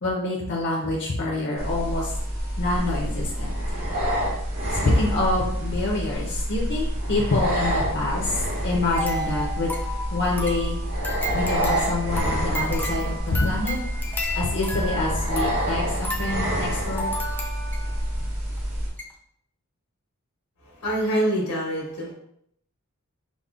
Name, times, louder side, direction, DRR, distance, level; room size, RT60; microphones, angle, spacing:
voice 1, 0.0-2.1 2.6-3.5 4.8-9.7 10.1-10.8 11.3-13.8 14.4-17.1, left 2 dB, 55° left, -3 dB, 0.6 m, -26 dB
sound 1, 1.6-18.9, equal, 65° right, 1.5 m, -27 dB
sound 2, 8.9-18.1 18.6-18.7 19.0-19.1, equal, 10° left, 0.4 m, -33 dB
voice 2, 20.6-22.1, right 1 dB, 90° left, -3 dB, 1.2 m, -25 dB
5.1 x 2.1 x 2.4 m, 0.69 s
head